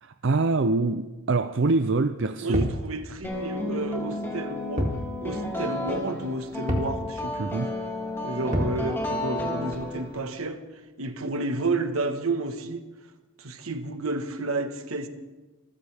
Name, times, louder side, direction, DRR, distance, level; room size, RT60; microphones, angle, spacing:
voice 1, 0.0-2.7 7.4-7.7, right 3 dB, 55° right, 0.5 m, -24 dB
voice 2, 2.4-4.9 5.2-7.5 8.2-10.6 11.0-12.9 13.4-15.1, right 2 dB, 80° right, 1.4 m, -31 dB
sound 1, 2.5-2.9 4.8-5.1 5.4-5.5 6.7-7.0 8.5-8.8, equal, 30° right, 2.4 m, -27 dB
sound 2, 3.2-10.3, left 1 dB, 10° left, 2.6 m, -32 dB
26.5 x 14.5 x 3.5 m
head